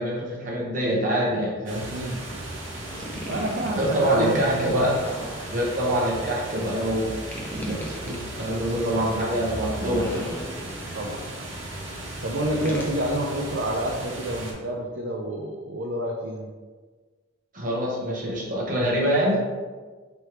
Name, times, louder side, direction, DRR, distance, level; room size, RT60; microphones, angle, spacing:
voice 1, 0.0-1.9 3.8-5.0 5.5-7.1 7.5-7.8 8.0-10.2 17.5-19.4, right 1 dB, 40° right, -4 dB, 1.0 m, -25 dB
sound 1, 1.7-14.5, right 1 dB, 75° right, 1.2 m, -36 dB
voice 2, 1.9-2.2 3.3-5.0 10.9-11.3 12.2-16.5, right 1 dB, 60° right, -1 dB, 0.5 m, -29 dB
sound 2, 2.9-3.9 5.0-5.9 7.3-8.2 9.6-10.9 12.6-13.0, equal, 10° left, 0.5 m, -37 dB
3.3 x 3.1 x 4.4 m, 1.4 s
head